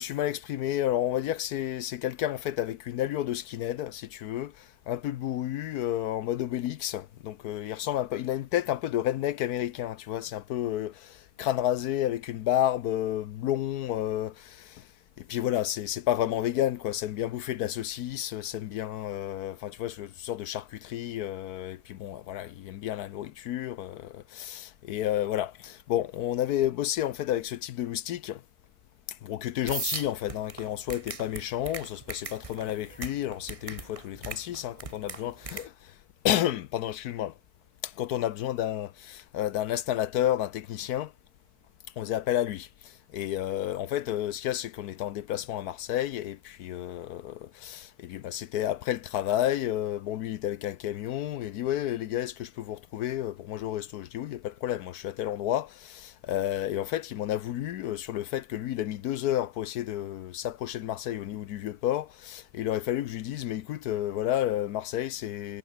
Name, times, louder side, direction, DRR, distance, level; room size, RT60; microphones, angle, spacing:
voice 1, 0.0-14.9 15.2-28.4 29.1-35.9 36.2-37.3 37.8-41.1 42.0-65.6, left 12 dB, 80° left, 1.2 m, -31 dB
sound 1, 29.7-35.7, right 3 dB, 25° right, 1.4 m, -38 dB
omnidirectional pair, 1.6 m